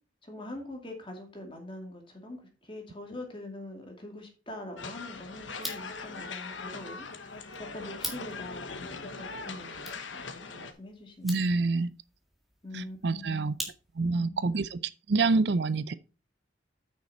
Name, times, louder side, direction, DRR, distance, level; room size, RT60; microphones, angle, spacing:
voice 1, 0.2-9.8 10.1-11.3 12.6-13.6 14.0-14.5, left 1 dB, 25° left, 2.4 m, -44 dB
sound 1, 4.8-10.7, left 4 dB, 80° left, 1.2 m, -41 dB
sound 2, 5.5-14.2, equal, ahead, 2.0 m, -45 dB
voice 2, 11.2-11.9 12.7-13.6 14.0-14.8 15.1-15.9, right 3 dB, 60° right, 0.5 m, -27 dB
9.4 x 6.4 x 4.2 m
head